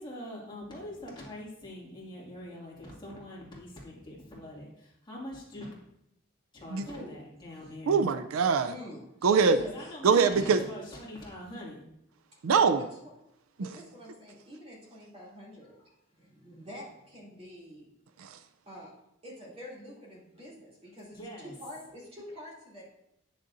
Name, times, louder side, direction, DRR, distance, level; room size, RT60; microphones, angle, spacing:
voice 1, 0.0-5.7 6.5-8.1 9.6-11.8 21.1-21.5, left 1 dB, 20° left, -4 dB, 2.1 m, -43 dB
voice 2, 6.8-7.7 8.6-9.9 10.3-10.5 12.3-12.9 13.6-17.9 18.7-18.9 19.2-22.8, left 1 dB, 30° right, -5 dB, 2.8 m, -46 dB
voice 3, 7.9-8.7 9.2-9.6 10.0-10.6 12.4-12.8 18.2-18.3, right 5 dB, 80° right, 10 dB, 0.4 m, -23 dB
9.6 x 6.4 x 2.6 m, 0.82 s
head